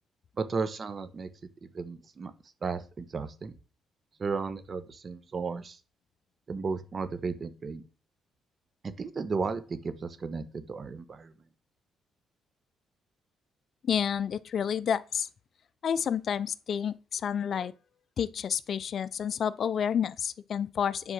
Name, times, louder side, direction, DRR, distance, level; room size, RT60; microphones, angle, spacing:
voice 1, 0.4-1.3 1.6-2.3 2.6-3.5 4.2-5.8 6.5-7.8 8.8-11.3, right 4 dB, 40° right, 1.3 m, -34 dB
voice 2, 13.8-15.3 15.8-17.7 18.2-21.1, left 8 dB, 55° left, 0.6 m, -30 dB
9.9 x 4.6 x 7.5 m
cardioid pair, 90°, 0 cm